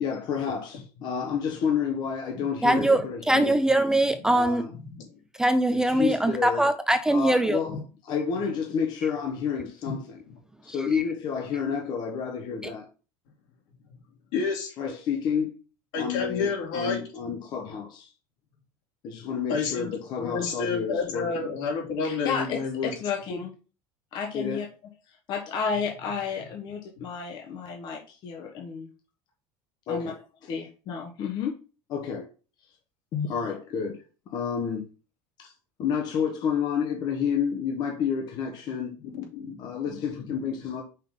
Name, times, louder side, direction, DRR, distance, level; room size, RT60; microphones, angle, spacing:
voice 1, 0.0-3.6 4.3-4.7 5.7-6.7 7.1-10.2 10.6-12.9 14.8-15.6 16.0-18.1 19.0-21.5 22.0-23.5 24.1-24.7 25.3-28.9 29.9-31.5 31.9-32.3 33.1-34.0 34.3-34.9 35.4-35.5 35.8-39.0 39.6-40.8, left 6 dB, 45° left, 1.1 m, -30 dB
voice 2, 2.6-4.7 5.4-7.6 10.8-11.0, right 1 dB, 5° right, 0.4 m, -22 dB
voice 3, 4.7-5.0 7.7-7.8 9.9-10.0 14.3-15.0 15.9-17.0 19.5-19.9 20.2-22.9 23.3-23.4 39.1-40.3, left 5 dB, 70° left, 3.0 m, -30 dB
5.5 x 3.8 x 5.3 m
cardioid pair, 155°, 10 cm